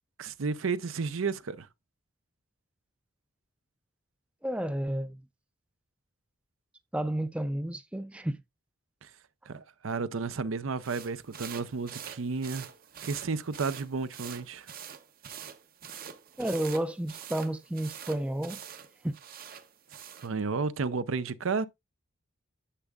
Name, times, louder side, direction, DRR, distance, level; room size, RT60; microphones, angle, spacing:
voice 1, 0.2-1.7 9.0-9.1 9.5-12.7 13.0-14.7 20.2-21.7, right 4 dB, 75° right, 0.6 m, -32 dB
voice 2, 4.4-5.2 6.9-8.4 16.4-18.6 19.0-19.2, right 1 dB, 5° right, 0.4 m, -31 dB
sound 1, 10.8-20.3, right 8 dB, 45° right, 0.8 m, -45 dB
9.9 x 7.1 x 2.3 m
head